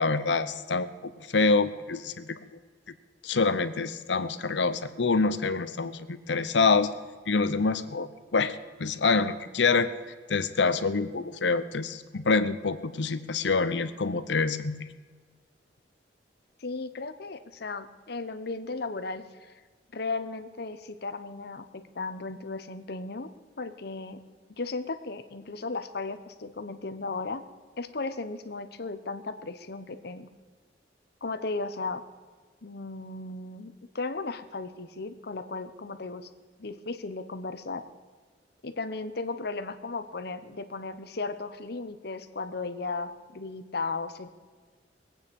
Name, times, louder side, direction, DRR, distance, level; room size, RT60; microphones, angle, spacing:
voice 1, 0.0-2.4 3.2-6.9 7.3-9.9 10.3-14.8, left 4 dB, 90° left, 12 dB, 0.8 m, -26 dB
voice 2, 16.6-19.5 19.9-23.3 23.6-24.2 24.6-27.4 27.8-30.3 31.2-32.0 32.6-36.3 36.6-37.8 38.6-44.3, left 3 dB, 65° left, 10 dB, 1.0 m, -35 dB
22.0 x 8.9 x 5.3 m, 1.5 s
head